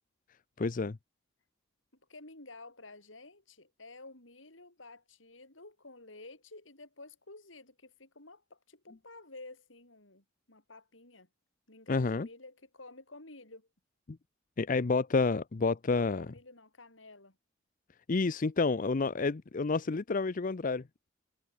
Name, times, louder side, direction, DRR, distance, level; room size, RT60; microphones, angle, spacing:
voice 1, 0.6-1.0 11.9-12.3 14.1-14.2 14.6-16.3 18.1-20.8, left 4 dB, 45° left, 0.6 m, -29 dB
voice 2, 2.1-11.3 11.7-13.7 16.0-17.4, left 2 dB, 85° left, 7.7 m, -52 dB
head